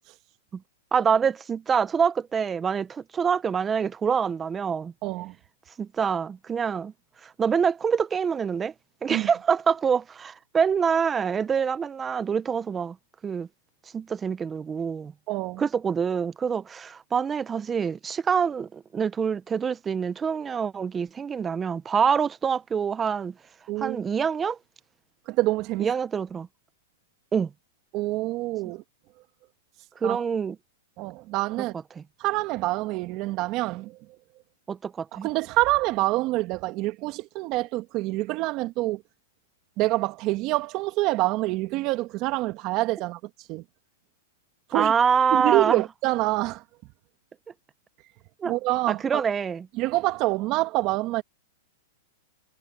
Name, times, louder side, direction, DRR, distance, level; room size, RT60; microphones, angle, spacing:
voice 1, 0.9-4.9 5.8-6.9 7.2-8.7 9.0-13.0 13.2-13.5 13.9-15.1 15.6-23.3 23.8-24.6 25.8-26.5 27.3-27.5 30.0-30.6 32.0-32.1 34.7-35.3 44.7-45.8 48.4-48.5 48.9-49.7, right 6 dB, 15° right, 0.8 m, -25 dB
voice 2, 5.0-5.3 9.1-9.3 15.3-15.6 23.7-24.0 25.3-25.9 27.9-28.8 30.0-30.2 31.0-31.8 32.2-34.0 35.1-39.0 39.8-43.2 43.5-43.6 44.7-44.9 45.3-46.6 48.4-49.2 49.8-51.2, right 19 dB, 40° right, 2.2 m, -26 dB
hypercardioid pair, 140°, 0 cm